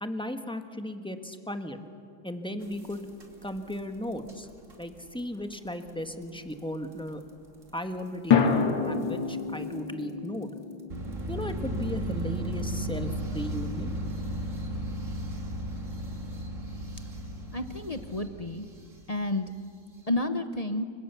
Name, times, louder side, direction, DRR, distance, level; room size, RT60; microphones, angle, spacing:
voice 1, 0.0-1.8 2.2-3.1 3.4-4.5 4.8-7.2 7.7-10.5 11.3-13.9, equal, 5° left, 7 dB, 1.2 m, -36 dB
sound 1, 2.3-3.4 8.3-12.6, left 6 dB, 85° left, 2.5 m, -29 dB
sound 2, 2.6-3.7 4.1-4.3 4.7-4.9 5.2-5.3 5.5-5.6 6.2-6.3 7.1-7.2 7.6-7.7 9.0-9.1 9.7-9.8 10.9-19.2, right 1 dB, 40° right, 3.1 m, -35 dB
voice 2, 17.5-18.7 19.1-19.5 20.1-20.8, left 2 dB, 30° left, 9 dB, 0.7 m, -30 dB
30.0 x 25.5 x 7.0 m, 2.5 s
omnidirectional pair, 2.1 m